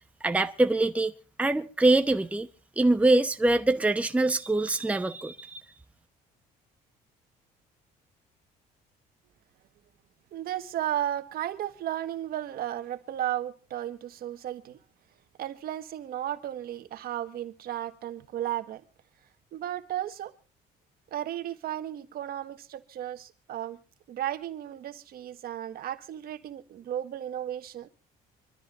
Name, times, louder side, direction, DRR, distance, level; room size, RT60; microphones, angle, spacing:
voice 1, 0.2-1.1 1.4-2.5 2.8-5.6, right 2 dB, 10° right, 0.9 m, -24 dB
voice 2, 10.3-14.8 15.4-18.8 19.5-20.3 21.1-23.8 24.1-27.9, right 12 dB, 65° right, 1.5 m, -34 dB
25.5 x 13.5 x 2.5 m
cardioid pair, 110°, 17 cm